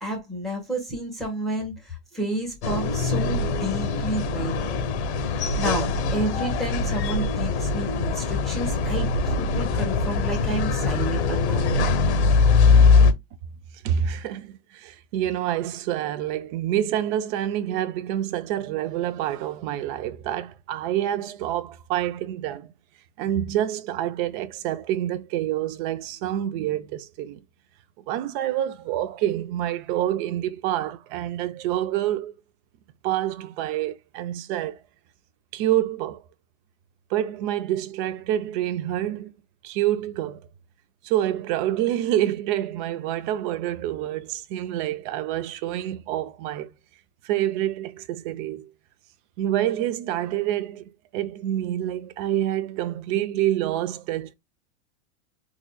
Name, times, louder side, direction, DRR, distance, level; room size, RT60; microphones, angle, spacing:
voice 1, 0.0-4.8 5.6-11.9, right 1 dB, ahead, 1.4 m, -31 dB
sound 1, 2.6-13.1, left 4 dB, 75° left, 1.0 m, -22 dB
voice 2, 13.8-22.7 23.2-27.4 28.1-32.3 33.0-34.8 35.5-36.2 37.1-39.3 39.6-40.5 41.0-46.7 47.2-48.7 49.4-54.3, right 12 dB, 45° right, 0.6 m, -27 dB
3.8 x 3.0 x 2.2 m
supercardioid pair, 145°, 34 cm